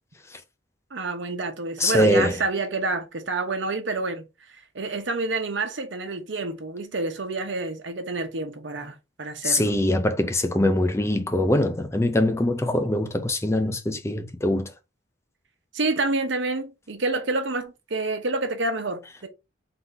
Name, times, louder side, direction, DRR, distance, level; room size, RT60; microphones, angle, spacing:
voice 1, 0.9-4.2 4.7-9.7 15.7-19.3, right 3 dB, 85° right, 1.0 m, -28 dB
voice 2, 1.8-2.4 9.4-14.7, left 1 dB, 15° left, 0.5 m, -23 dB
3.9 x 2.7 x 3.8 m
head